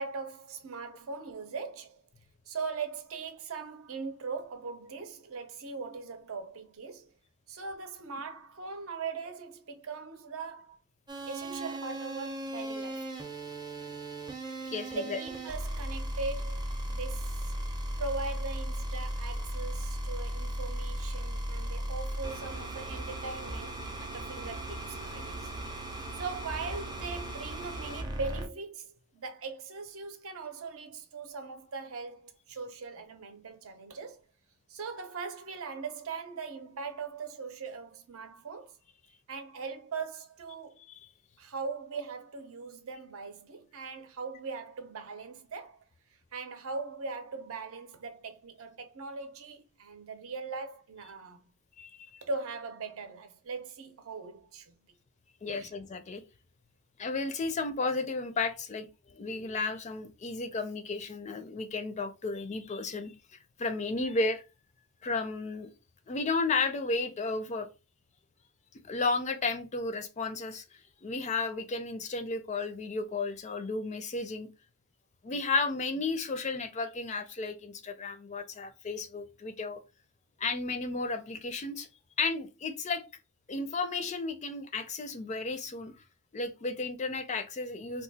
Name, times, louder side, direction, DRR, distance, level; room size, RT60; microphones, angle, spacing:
voice 1, 0.0-2.0 2.5-7.1 7.5-10.8 11.3-13.1 14.9-16.6 16.9-17.5 18.0-25.4 26.2-34.2 34.7-38.7 39.3-40.8 41.4-45.8 46.3-51.4 52.2-54.7 55.5-55.7, right 4 dB, 65° right, 0.7 m, -40 dB
sound 1, 11.1-28.5, right 1 dB, 20° right, 0.6 m, -36 dB
voice 2, 14.7-15.2 40.9-41.1 51.8-52.2 55.4-56.2 57.0-58.9 59.1-64.4 65.0-65.7 66.1-67.7 68.8-70.6 71.0-74.5 75.2-79.8 80.4-81.9 82.2-83.0 83.5-85.9 86.3-88.0, left 3 dB, 35° left, 0.4 m, -33 dB
2.8 x 2.3 x 4.0 m
head